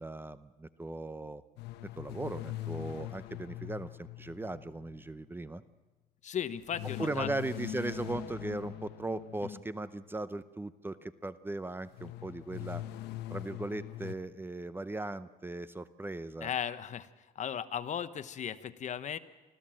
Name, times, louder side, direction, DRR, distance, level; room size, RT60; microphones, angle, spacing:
voice 1, 0.0-1.4 2.0-5.6 7.0-12.8 13.3-16.5, right 2 dB, 10° right, 14 dB, 0.7 m, -38 dB
sound 1, 1.6-5.1 6.7-9.8 11.9-14.1, left 14 dB, 85° left, 1.0 m, -42 dB
voice 2, 6.2-7.3 9.4-9.6 16.4-17.1 17.3-19.2, left 9 dB, 45° left, 13 dB, 1.0 m, -36 dB
25.5 x 14.5 x 7.6 m, 1.2 s
cardioid pair, 110°, 17 cm